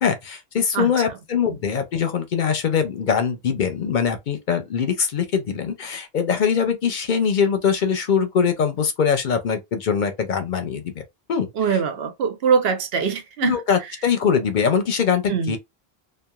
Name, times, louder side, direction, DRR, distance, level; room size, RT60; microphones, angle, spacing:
voice 1, 0.0-11.0 11.3-11.8 13.4-15.6, left 7 dB, 60° left, 0.6 m, -22 dB
voice 2, 11.6-13.6 15.3-15.6, right 6 dB, 75° right, 0.8 m, -22 dB
2.9 x 2.2 x 2.3 m
omnidirectional pair, 1.0 m